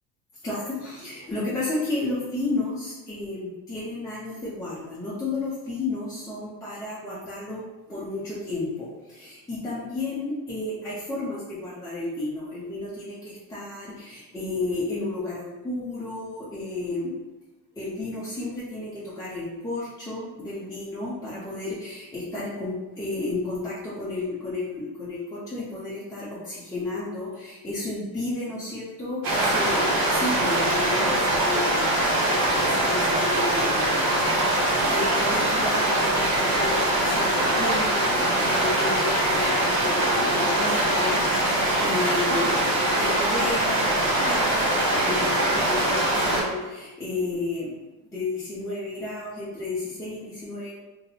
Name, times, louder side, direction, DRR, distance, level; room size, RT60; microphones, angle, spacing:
voice 1, 0.4-17.1 17.8-34.4 34.9-47.7 48.1-50.7, left 2 dB, 5° left, -10 dB, 0.8 m, -32 dB
sound 1, 29.2-46.4, right 1 dB, 45° right, 1.1 m, -23 dB
2.6 x 2.3 x 2.8 m, 1.1 s
hypercardioid pair, 75°, 47 cm